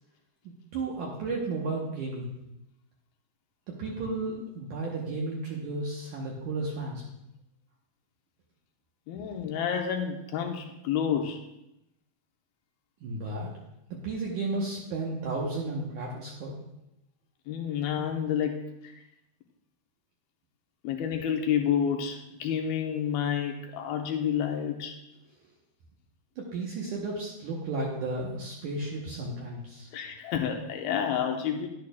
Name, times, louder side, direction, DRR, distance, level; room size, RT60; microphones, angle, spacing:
voice 1, 0.7-2.3 3.7-7.0 13.0-13.5 14.0-16.6 26.4-29.9, right 2 dB, 75° right, -2 dB, 1.9 m, -33 dB
voice 2, 9.1-11.4 17.5-18.6 18.8-18.9 20.8-24.9 29.9-31.7, left 8 dB, 80° left, 3 dB, 2.3 m, -29 dB
11.0 x 10.5 x 2.3 m, 0.88 s
omnidirectional pair, 4.8 m